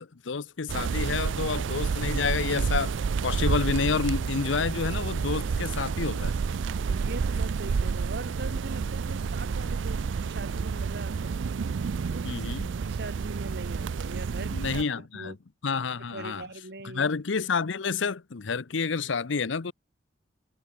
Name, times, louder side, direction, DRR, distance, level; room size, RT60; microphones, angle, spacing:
voice 1, 0.0-6.3 12.2-12.7 14.5-15.4 15.6-16.5 16.8-19.7, left 5 dB, 80° left, 0.7 m, -29 dB
sound 1, 0.7-14.8, right 5 dB, 80° right, 0.4 m, -29 dB
voice 2, 6.7-11.4 12.1-12.5 12.8-15.4 16.0-17.1, right 2 dB, 60° right, 3.6 m, -41 dB
head